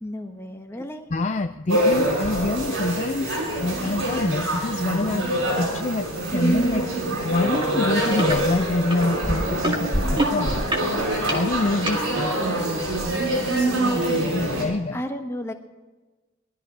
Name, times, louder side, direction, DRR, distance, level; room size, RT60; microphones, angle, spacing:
voice 1, 0.0-1.1 14.9-15.5, left 1 dB, 10° left, 4 dB, 1.3 m, -33 dB
voice 2, 1.1-5.2 5.5-6.9 7.2-10.7 11.3-12.4 12.7-12.9 13.4-15.0, left 2 dB, 35° left, 7 dB, 0.5 m, -26 dB
sound 1, 1.7-14.6, right 1 dB, 85° right, 6.8 m, -25 dB
sound 2, 7.5-7.7 8.0-8.4 8.9-12.0 12.7-12.8, right 1 dB, 25° right, 2.0 m, -26 dB
19.5 x 12.5 x 4.7 m, 1.2 s
head